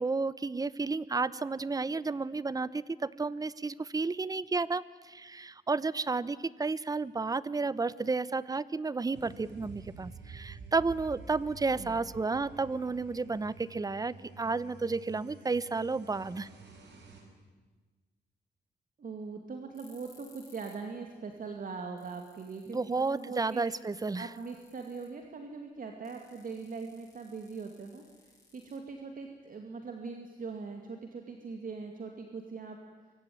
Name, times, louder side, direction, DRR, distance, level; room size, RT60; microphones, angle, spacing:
voice 1, 0.0-16.5 22.7-24.3, right 3 dB, 20° right, 19 dB, 0.7 m, -32 dB
sound 1, 9.1-17.2, right 5 dB, 80° right, 5.8 m, -50 dB
voice 2, 19.0-23.6 24.2-32.8, right 4 dB, 50° right, 4 dB, 2.4 m, -41 dB
sound 2, 19.7-20.9 21.2-21.3 21.7-21.8 22.0-25.2 26.0-29.2, left 2 dB, 15° left, 8.0 m, -62 dB
24.0 x 24.0 x 9.5 m, 1.3 s
wide cardioid pair, 140°, 18 cm